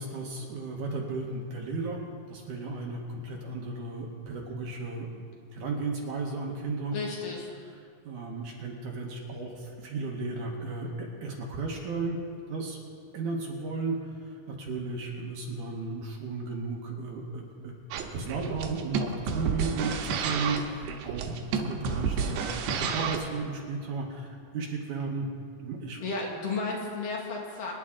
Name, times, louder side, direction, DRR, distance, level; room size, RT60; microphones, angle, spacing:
voice 1, 0.0-2.0 2.3-5.1 5.5-7.0 8.1-12.2 12.5-12.8 13.1-25.3 25.6-26.0, right 3 dB, 65° right, 0 dB, 2.3 m, -34 dB
voice 2, 6.9-7.5 26.0-27.7, left 3 dB, 65° left, -1 dB, 3.1 m, -33 dB
sound 1, 17.9-23.3, right 5 dB, 85° right, 2.9 m, -31 dB
25.5 x 9.8 x 3.7 m, 2.3 s
omnidirectional pair, 4.4 m